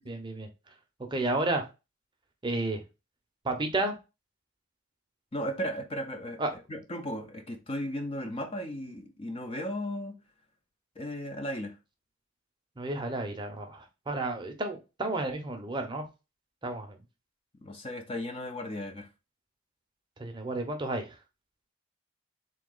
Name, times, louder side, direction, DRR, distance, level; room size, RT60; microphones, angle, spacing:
voice 1, 0.1-0.5 1.1-1.6 2.4-2.8 3.4-3.9 6.4-6.5 12.8-16.0 16.6-17.0 20.2-21.1, right 2 dB, 20° right, 0.6 m, -31 dB
voice 2, 5.3-6.4 6.7-10.2 11.0-11.8 17.6-19.1, equal, 25° left, 0.5 m, -35 dB
3.7 x 2.8 x 3.8 m
head